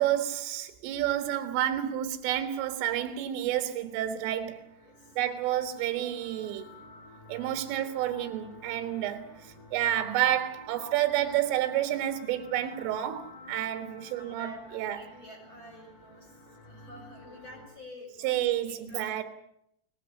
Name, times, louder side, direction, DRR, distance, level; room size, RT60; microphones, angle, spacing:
voice 1, 0.0-4.6 5.2-6.7 7.3-15.0 18.2-19.2, right 12 dB, 80° right, 4.1 m, -30 dB
sound 1, 3.5-17.7, left 2 dB, 40° left, 6.0 m, -51 dB
voice 2, 4.8-5.2 14.1-18.4 18.9-19.2, left 1 dB, 25° left, 6.9 m, -50 dB
23.0 x 19.5 x 8.5 m
omnidirectional pair, 5.7 m